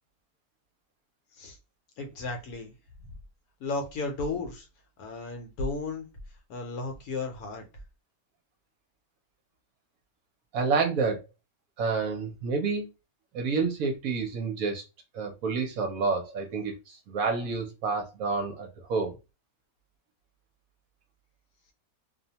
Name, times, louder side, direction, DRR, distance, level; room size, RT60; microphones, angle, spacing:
voice 1, 2.0-2.7 3.6-4.7 5.0-6.1 6.5-7.6, left 3 dB, 70° left, 1.1 m, -34 dB
voice 2, 10.5-11.2 11.8-12.9 13.3-14.8 15.1-19.1, right 4 dB, 70° right, 0.9 m, -29 dB
2.6 x 2.1 x 2.8 m
omnidirectional pair, 1.7 m